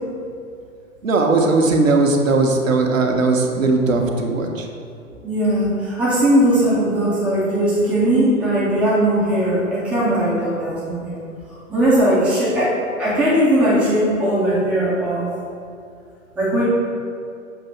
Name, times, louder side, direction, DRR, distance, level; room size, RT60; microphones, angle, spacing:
voice 1, 1.0-4.7 12.4-12.6, right 3 dB, 70° right, 2 dB, 0.9 m, -18 dB
voice 2, 5.2-11.2 11.5-15.3 16.4-16.7, right 1 dB, 5° right, -9 dB, 0.4 m, -19 dB
6.7 x 2.7 x 5.7 m, 2.5 s
figure-of-eight pair, 115°, 41 cm